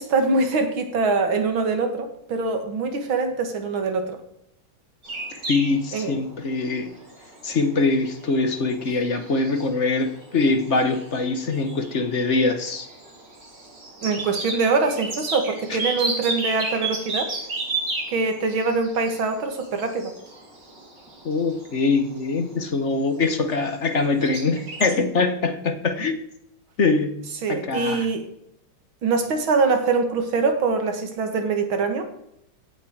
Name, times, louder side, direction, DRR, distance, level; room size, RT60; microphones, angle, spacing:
voice 1, 0.0-4.2 5.9-6.2 14.0-17.3 18.1-20.1 27.4-28.3 29.0-32.1, right 4 dB, 80° right, 6 dB, 2.6 m, -23 dB
sound 1, 5.0-23.9 24.2-24.9, right 2 dB, 60° right, 4.0 m, -33 dB
voice 2, 5.5-6.9 7.4-12.9 15.7-15.8 21.2-26.2 26.8-27.2 27.5-28.1, left 3 dB, 40° left, 9 dB, 1.3 m, -23 dB
16.5 x 8.1 x 4.7 m, 0.81 s
omnidirectional pair, 2.2 m